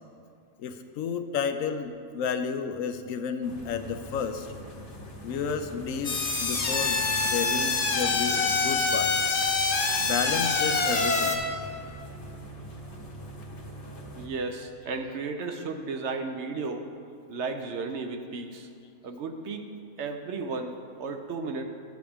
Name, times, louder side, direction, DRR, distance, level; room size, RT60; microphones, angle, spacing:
voice 1, 0.6-4.5 5.2-7.0 7.3-9.3 10.0-11.4, left 6 dB, 80° left, 8 dB, 1.0 m, -32 dB
sound 1, 3.4-14.3, right 1 dB, 60° left, 1.3 m, -43 dB
sound 2, 6.0-11.4, left 4 dB, 40° left, 0.7 m, -25 dB
voice 2, 14.2-16.9 17.3-18.7 19.0-19.7 20.0-21.6, right 4 dB, 65° right, 6 dB, 0.9 m, -34 dB
12.5 x 7.8 x 3.5 m, 2.3 s
omnidirectional pair, 1.4 m